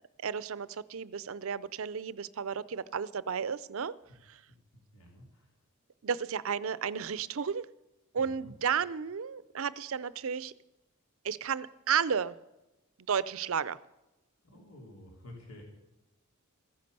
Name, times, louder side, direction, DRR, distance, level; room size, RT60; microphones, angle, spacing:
voice 1, 0.2-3.9 4.3-4.4 6.0-7.7 8.1-10.5 11.2-12.4 13.1-13.8, right 7 dB, 65° right, 18 dB, 0.5 m, -33 dB
voice 2, 4.7-5.5 8.1-8.5 14.4-15.6, left 1 dB, 85° left, -1 dB, 3.8 m, -51 dB
15.0 x 10.5 x 6.8 m, 0.97 s
head